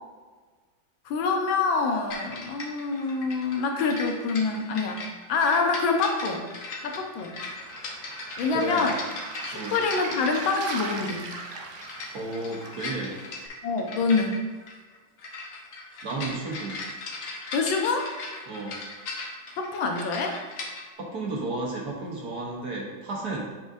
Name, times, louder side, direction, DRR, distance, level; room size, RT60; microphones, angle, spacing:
voice 1, 1.0-5.0 5.3-6.4 6.8-7.4 8.4-9.0 9.5-11.2 13.6-14.4 17.5-18.1 19.6-20.4, left 4 dB, 75° left, 3 dB, 1.5 m, -26 dB
sound 1, 2.1-20.9, left 3 dB, 55° left, 1.0 m, -39 dB
Waves surf, 7.5-13.5, right 4 dB, 80° right, 0.6 m, -39 dB
voice 2, 8.5-8.9 9.5-9.8 12.1-13.2 16.0-16.8 18.5-18.8 21.0-23.4, right 2 dB, 55° right, -1 dB, 1.4 m, -33 dB
7.6 x 5.5 x 2.6 m, 1.4 s
omnidirectional pair, 2.2 m